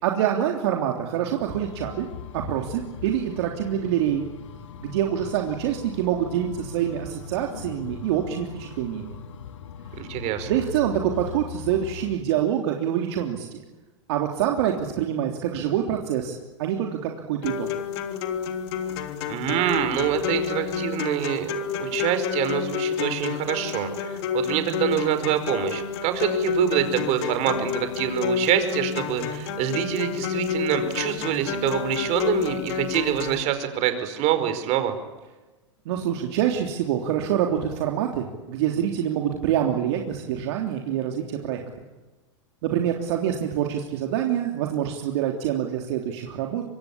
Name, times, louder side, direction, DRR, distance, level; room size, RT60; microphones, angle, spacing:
voice 1, 0.0-2.1 2.3-4.2 4.8-9.2 10.5-13.6 14.1-17.7 35.8-41.6 42.6-46.6, right 10 dB, 60° right, 2 dB, 3.4 m, -26 dB
sound 1, 1.5-12.2, left 7 dB, 75° left, 2.4 m, -40 dB
voice 2, 10.0-10.5 19.3-21.5 21.8-34.9, right 11 dB, 45° right, 9 dB, 4.9 m, -26 dB
sound 2, 17.4-33.4, left 7 dB, 60° left, 3.2 m, -29 dB
26.0 x 23.0 x 8.8 m, 1.2 s
hypercardioid pair, 110°, 16 cm